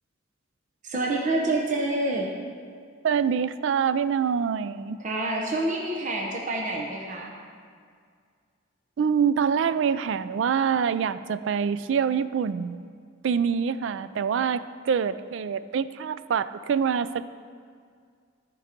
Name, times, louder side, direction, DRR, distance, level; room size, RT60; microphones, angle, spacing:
voice 1, 0.8-2.3 5.0-7.3, right 2 dB, 40° right, 0 dB, 0.8 m, -27 dB
voice 2, 3.0-5.0 9.0-12.9 13.2-17.2, right 7 dB, 65° right, 14 dB, 0.3 m, -25 dB
14.0 x 4.7 x 5.1 m, 2.1 s
head